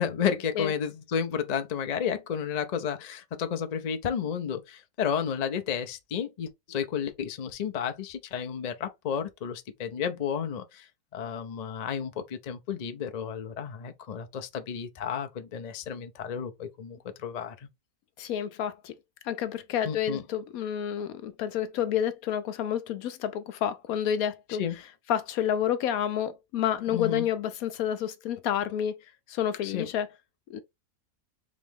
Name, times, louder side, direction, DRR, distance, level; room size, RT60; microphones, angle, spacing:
voice 1, 0.0-10.9 11.1-17.6 19.8-20.2 24.6-24.8 26.9-27.3 29.6-29.9, left 7 dB, 55° left, 0.4 m, -32 dB
voice 2, 18.2-18.9 19.2-24.6 25.1-29.0 29.3-30.1 30.5-30.6, left 9 dB, 75° left, 1.1 m, -29 dB
3.8 x 3.1 x 3.4 m
omnidirectional pair, 1.6 m